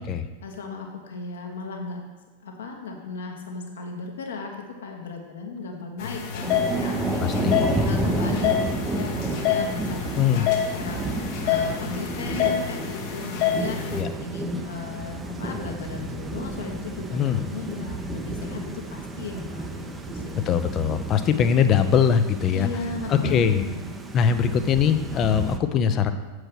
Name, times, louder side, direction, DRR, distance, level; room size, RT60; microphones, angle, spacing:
voice 1, 0.4-2.0 2.4-20.5 22.5-23.8, left 4 dB, 65° left, 2 dB, 1.3 m, -36 dB
sound 1, 6.0-14.0, left 8 dB, 45° left, 1.0 m, -27 dB
Thunder / Rain, 6.4-25.6, right 2 dB, 15° right, 0.7 m, -31 dB
voice 2, 7.2-7.9 10.2-10.5 13.9-14.1 17.1-17.4 20.5-22.7 23.1-23.6 24.1-26.1, left 8 dB, 30° left, 10 dB, 0.6 m, -22 dB
7.6 x 4.7 x 6.1 m, 1.2 s
figure-of-eight pair, 90°, 0 cm